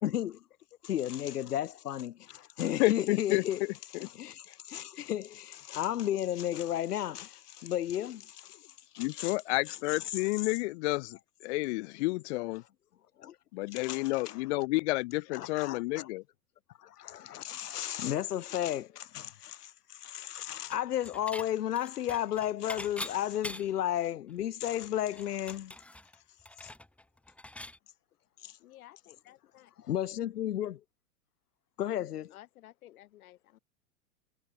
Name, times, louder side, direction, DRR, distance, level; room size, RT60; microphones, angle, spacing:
voice 1, 0.0-0.4 0.8-3.6 4.0-8.6 8.9-9.3 13.2-13.4 13.7-14.3 15.3-16.1 16.8-25.7 26.6-26.7 28.4-28.6 29.8-30.8 31.8-32.3, left 11 dB, 85° left, 1.4 m, -34 dB
voice 2, 2.8-3.7 9.0-12.6 13.5-16.2, left 22 dB, 50° left, 0.7 m, -30 dB
Dishes pots and pans / Chink clink, 20.7-21.5 21.8-23.9 24.3-24.4 24.7-27.8, left 1 dB, 5° left, 1.7 m, -44 dB
voice 3, 28.6-29.7 32.3-33.6, left 14 dB, 65° left, 2.6 m, -55 dB
hypercardioid pair, 120°, 45 cm